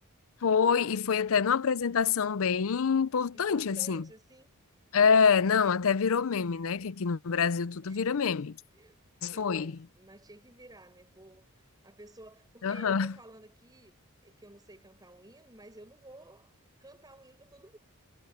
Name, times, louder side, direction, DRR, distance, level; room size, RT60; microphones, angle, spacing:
voice 1, 0.4-4.1 4.9-8.6 9.2-9.8 12.6-13.2, left 6 dB, 65° left, 0.5 m, -26 dB
voice 2, 3.3-4.5 7.8-9.0 9.3-11.5 11.8-13.9 14.2-16.5 16.8-17.8, right 1 dB, 20° right, 7.7 m, -53 dB
head